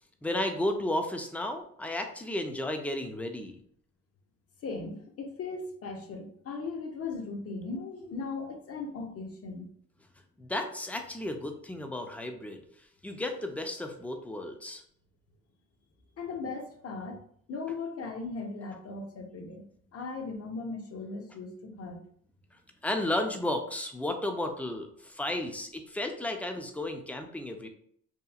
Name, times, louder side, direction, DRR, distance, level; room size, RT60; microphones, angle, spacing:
voice 1, 0.2-3.6 10.4-12.6 13.0-14.8 22.8-27.7, left 1 dB, 5° left, 5 dB, 0.4 m, -33 dB
voice 2, 4.6-9.7 16.2-17.2 17.5-19.6 19.9-22.0 25.2-25.3, left 4 dB, 50° left, 3 dB, 0.7 m, -38 dB
2.8 x 2.4 x 2.3 m, 0.62 s
cardioid pair, 90°, 30 cm